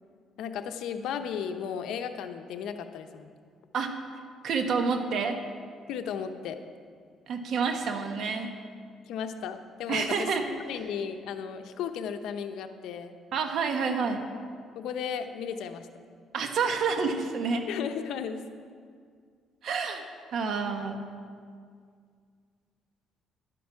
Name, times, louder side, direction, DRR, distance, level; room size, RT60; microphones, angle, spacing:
voice 1, 0.4-3.3 5.9-6.6 9.1-13.1 14.8-15.9 17.7-18.4, left 7 dB, 80° left, 8 dB, 0.8 m, -35 dB
voice 2, 4.4-5.4 7.3-8.5 9.9-10.4 13.3-14.3 16.3-17.6 19.6-20.0 20.3-21.0, right 5 dB, 65° right, 5 dB, 1.3 m, -28 dB
11.5 x 10.0 x 5.8 m, 2.1 s
cardioid pair, 115°, 0 cm